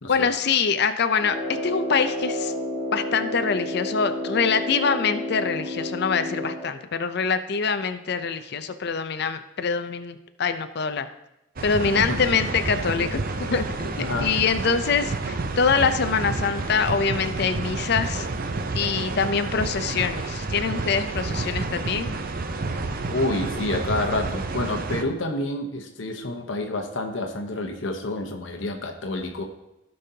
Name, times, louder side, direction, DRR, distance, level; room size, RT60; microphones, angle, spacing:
voice 1, 0.1-2.5 2.9-11.1 11.6-13.2 13.5-18.3 18.7-22.1, left 5 dB, 60° left, 9 dB, 0.5 m, -24 dB
Brass instrument, 1.2-6.8, left 1 dB, 25° right, 1.6 m, -30 dB
sound 1, 11.6-25.0, right 3 dB, 50° right, 0.6 m, -29 dB
voice 2, 12.0-12.3 13.0-13.1 14.0-14.3 23.1-29.4, left 2 dB, 80° left, 4 dB, 1.0 m, -28 dB
15.5 x 5.4 x 2.8 m, 0.90 s
head